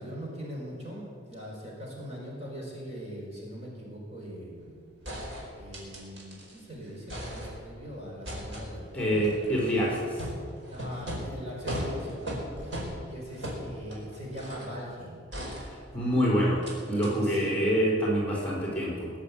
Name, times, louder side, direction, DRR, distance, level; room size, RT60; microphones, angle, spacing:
voice 1, 0.0-4.8 5.5-9.6 10.7-12.7 13.0-15.2 16.6-17.9, equal, 35° right, -3 dB, 4.8 m, -41 dB
sound 1, 4.6-4.7 5.0-6.6 6.9-7.8 8.2-14.8 15.3-16.2 16.6-16.7 17.0-17.1, equal, 80° right, 4.8 m, -38 dB
voice 2, 8.9-10.2 15.6-19.1, equal, 5° left, -4 dB, 4.0 m, -26 dB
21.0 x 7.5 x 8.4 m, 2.1 s
head